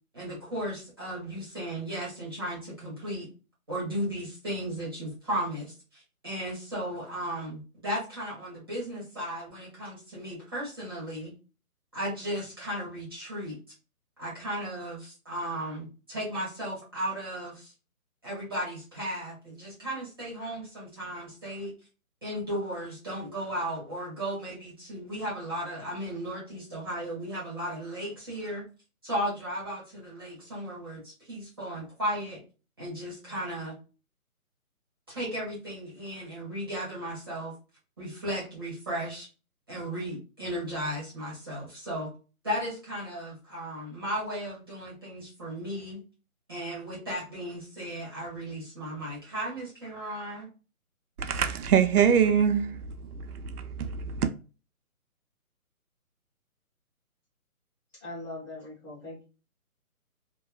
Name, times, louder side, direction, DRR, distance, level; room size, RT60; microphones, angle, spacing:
voice 1, 0.1-3.3 3.7-11.3 11.9-13.6 14.2-17.7 18.2-21.7 22.2-28.6 29.0-32.4 32.8-33.8 35.1-37.5 38.0-39.3 39.7-42.1 42.4-46.0 46.5-50.5, right 1 dB, 15° right, 0.7 m, -35 dB
voice 2, 51.2-54.3, right 8 dB, 80° right, 0.5 m, -25 dB
voice 3, 57.9-59.3, left 2 dB, 20° left, 1.2 m, -41 dB
2.9 x 2.0 x 2.3 m
hypercardioid pair, 160°, 44 cm